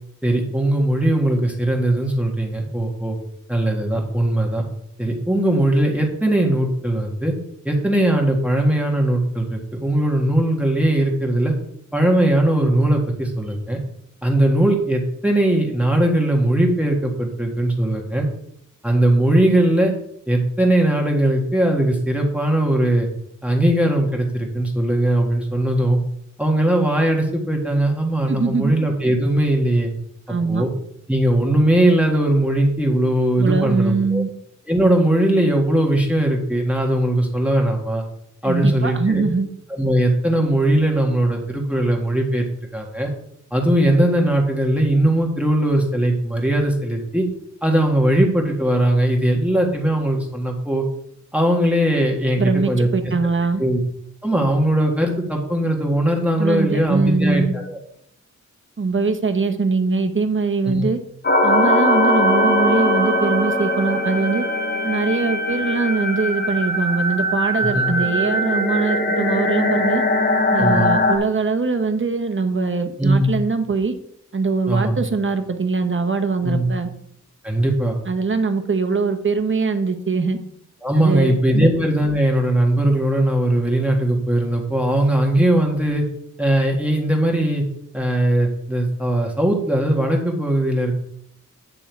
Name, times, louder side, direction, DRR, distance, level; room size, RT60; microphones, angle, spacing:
voice 1, 0.2-3.2 3.5-4.6 5.0-7.3 7.6-11.5 11.9-13.8 14.2-18.3 18.8-19.9 20.3-23.1 23.4-26.0 26.4-29.9 30.5-30.7 31.1-34.2 34.7-38.0 38.4-39.2 39.8-42.4 42.7-43.1 43.5-47.2 47.6-50.8 51.3-52.9 53.6-53.8 54.2-57.8 60.7-60.8 67.7-67.9 70.6-70.9 73.0-73.4 74.7-74.9 76.4-76.7 77.4-78.0 80.8-86.0 86.4-87.6 87.9-90.9, right 1 dB, 5° right, 0 dB, 1.6 m, -19 dB
voice 2, 28.3-28.7 30.3-30.6 33.4-34.3 38.4-39.5 52.4-53.6 56.4-57.5 58.8-61.0 61.4-64.4 64.8-70.0 70.5-73.9 74.3-76.9 78.1-80.4 80.9-81.7, right 4 dB, 40° right, 7 dB, 1.1 m, -22 dB
JK Pallas, 61.2-71.2, left 1 dB, 35° left, 1.3 m, -20 dB
9.1 x 6.2 x 4.7 m, 0.69 s
wide cardioid pair, 95°, 31 cm